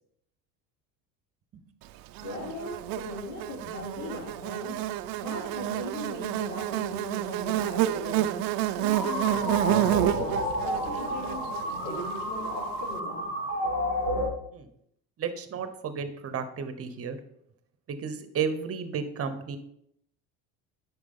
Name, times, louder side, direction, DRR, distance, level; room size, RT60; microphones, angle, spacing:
voice 1, 2.2-4.8 5.2-8.4 8.8-13.2, left 1 dB, 65° left, -8 dB, 3.7 m, -39 dB
Buzz, 2.2-12.6, right 13 dB, 65° right, 0.6 m, -29 dB
sound 1, 8.9-14.3, equal, 90° left, 3.0 m, -31 dB
voice 2, 15.2-17.2 17.9-19.6, right 6 dB, 35° right, 10 dB, 1.0 m, -33 dB
8.7 x 6.1 x 3.8 m, 0.72 s
supercardioid pair, 105°, 39 cm